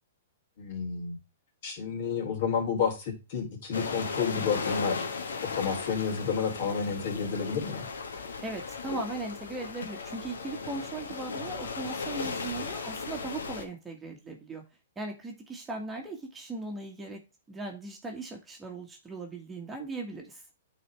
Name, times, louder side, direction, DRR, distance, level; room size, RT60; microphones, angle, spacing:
voice 1, 0.6-1.2 1.6-5.0 5.4-7.9, left 6 dB, 50° left, 1 dB, 3.4 m, -30 dB
sound 1, 3.7-13.6, left 4 dB, 90° left, 1.5 m, -36 dB
voice 2, 8.4-14.6 14.9-17.2 17.5-20.4, right 3 dB, 10° right, 1 dB, 1.5 m, -38 dB
9.2 x 4.2 x 3.3 m, 0.28 s
hypercardioid pair, 145°, 0 cm